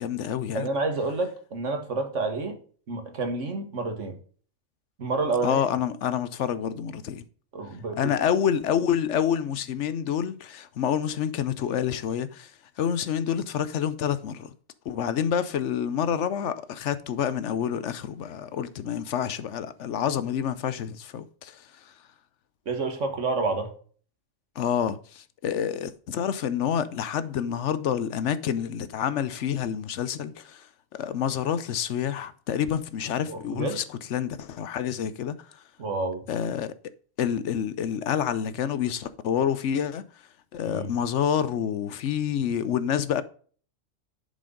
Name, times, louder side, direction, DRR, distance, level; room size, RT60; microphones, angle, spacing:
voice 1, 0.0-0.7 5.4-7.2 8.0-12.5 12.8-14.5 14.9-21.9 24.6-35.6 36.3-36.7 37.2-40.1 40.5-43.2, left 9 dB, 70° left, 1.0 m, -28 dB
voice 2, 0.5-2.6 2.9-4.2 5.0-5.6 7.5-8.1 22.7-23.7 33.3-33.8 35.8-36.2 40.6-40.9, right 3 dB, 70° right, 1.9 m, -29 dB
11.0 x 5.1 x 3.8 m
omnidirectional pair, 1.3 m